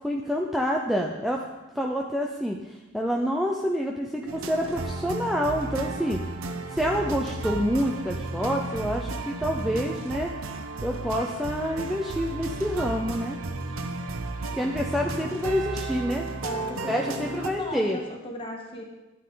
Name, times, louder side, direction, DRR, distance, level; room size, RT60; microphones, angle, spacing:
voice 1, 0.0-1.4 1.7-6.2 6.7-10.3 10.8-13.4 14.5-16.3 16.9-18.0, equal, ahead, 0 dB, 0.5 m, -27 dB
sound 1, 4.3-17.5, right 3 dB, 85° right, 0.9 m, -33 dB
voice 2, 16.3-18.8, left 2 dB, 25° left, 0 dB, 1.8 m, -37 dB
12.5 x 8.9 x 3.8 m, 1.1 s
head